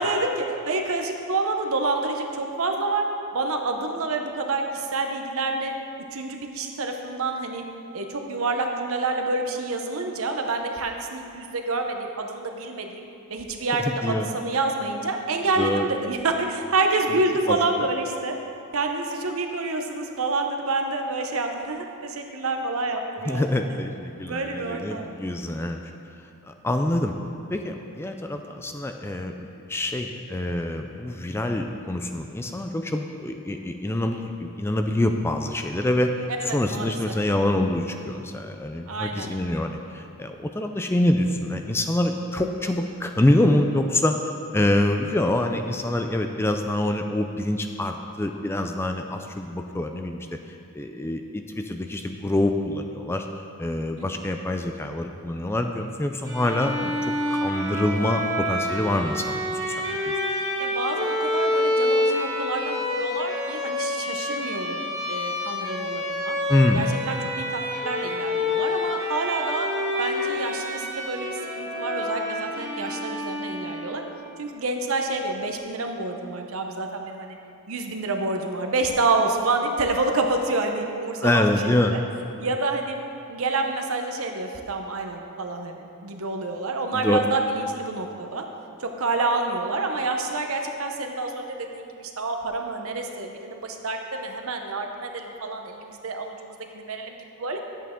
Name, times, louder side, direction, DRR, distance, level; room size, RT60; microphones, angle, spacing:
voice 1, 0.0-3.1 3.3-5.7 6.1-7.6 7.9-18.4 18.7-23.5 24.2-25.2 36.4-37.0 38.9-39.3 54.0-54.1 60.6-66.4 66.7-69.7 70.0-74.0 74.4-77.4 77.7-82.0 82.4-83.0 83.3-88.5 88.8-97.6, right 3 dB, 65° right, 4 dB, 0.8 m, -28 dB
voice 2, 13.8-14.3 15.6-15.9 17.5-17.6 23.3-25.8 26.5-27.1 27.5-36.1 36.5-50.3 50.7-53.3 53.6-56.9 57.3-60.1 66.5-66.9 81.2-81.9 86.9-87.2, left 1 dB, 10° left, 5 dB, 0.3 m, -25 dB
Bowed string instrument, 56.2-74.1, left 1 dB, 15° right, 1.2 m, -28 dB
10.5 x 8.3 x 3.7 m, 2.7 s
head